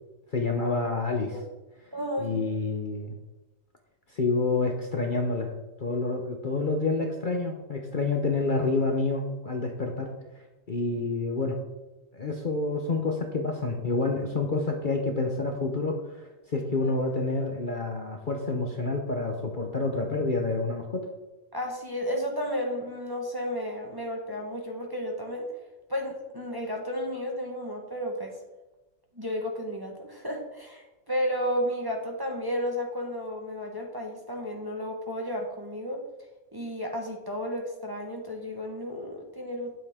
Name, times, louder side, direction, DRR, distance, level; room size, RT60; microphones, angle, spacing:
voice 1, 0.3-1.4 2.2-3.1 4.1-5.5 5.8-10.1 10.7-11.6 12.1-21.1, left 3 dB, 40° left, 2 dB, 1.0 m, -28 dB
voice 2, 1.9-2.4 16.8-16.9 21.5-25.5 25.9-28.4 29.1-36.0 36.5-39.7, equal, 15° right, 0 dB, 1.3 m, -33 dB
9.4 x 8.3 x 3.6 m, 1.1 s
omnidirectional pair, 1.5 m